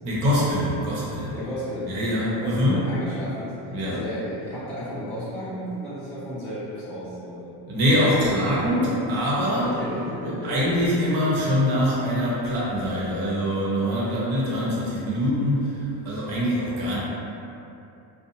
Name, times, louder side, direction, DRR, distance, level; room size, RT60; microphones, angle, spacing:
voice 1, 0.0-1.4 1.9-2.8 3.7-4.0 7.7-9.8 10.3-17.0, equal, 75° right, -6 dB, 1.0 m, -24 dB
voice 2, 1.3-1.9 2.4-7.5 8.1-9.0 9.5-10.8, equal, 5° left, -12 dB, 0.4 m, -33 dB
2.7 x 2.1 x 2.7 m, 2.8 s
cardioid pair, 125°, 50 cm